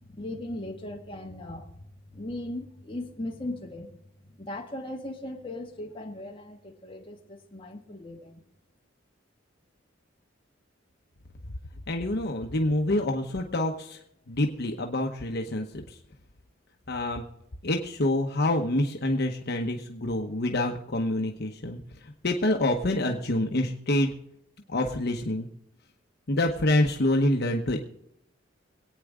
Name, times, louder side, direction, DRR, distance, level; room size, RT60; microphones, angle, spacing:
voice 1, 0.0-8.4, left 1 dB, 30° left, 0 dB, 1.8 m, -38 dB
voice 2, 11.9-14.0 14.3-16.0 16.9-17.2 17.6-24.1 24.7-25.5 26.3-27.8, left 1 dB, 55° left, 2 dB, 1.0 m, -27 dB
24.5 x 9.1 x 3.7 m, 0.79 s
head